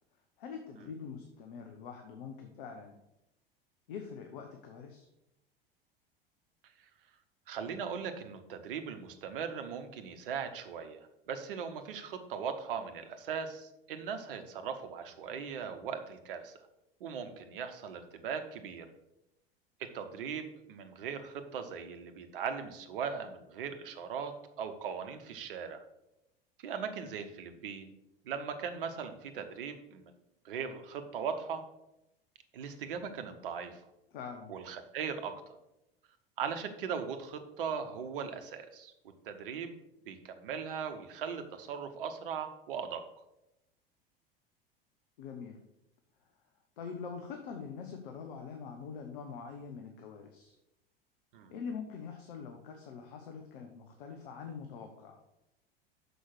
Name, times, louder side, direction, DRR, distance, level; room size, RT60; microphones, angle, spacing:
voice 1, 0.4-3.0 3.9-5.1 34.1-34.6 45.2-45.6 46.8-50.5 51.5-55.2, left 6 dB, 60° left, 4 dB, 0.9 m, -44 dB
voice 2, 7.5-11.0 11.3-16.6 17.0-18.9 19.8-24.3 24.6-25.8 26.6-27.9 28.2-30.1 30.4-31.6 32.5-33.8 34.5-35.6 36.4-38.9 39.2-39.7 40.1-43.0 51.3-51.5, right 6 dB, 65° right, 8 dB, 1.0 m, -39 dB
6.4 x 5.1 x 5.9 m, 0.89 s
figure-of-eight pair, 80°, 30 cm